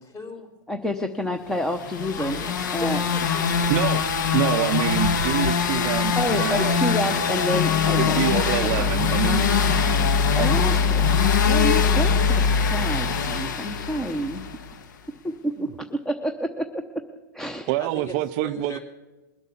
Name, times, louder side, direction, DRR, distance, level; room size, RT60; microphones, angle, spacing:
voice 1, 0.0-0.5 2.2-3.7 17.8-18.8, left 1 dB, 25° left, 3 dB, 3.5 m, -38 dB
voice 2, 0.7-2.4 2.7-3.0 5.8-8.2 8.6-8.9 10.4-11.0 11.5-14.4 15.2-17.0 17.3-17.7, equal, 5° left, 7 dB, 0.7 m, -29 dB
sound 1, 1.7-14.7, left 7 dB, 80° left, 1.3 m, -24 dB
voice 3, 3.7-4.1 4.3-6.8 8.0-10.1 10.4-10.9 11.2-11.3 17.7-18.8, right 16 dB, 40° right, 12 dB, 0.4 m, -27 dB
sound 2, 7.5-14.6, left 5 dB, 50° left, 0.7 m, -24 dB
21.5 x 8.2 x 7.1 m, 1.1 s
hypercardioid pair, 140°, 10 cm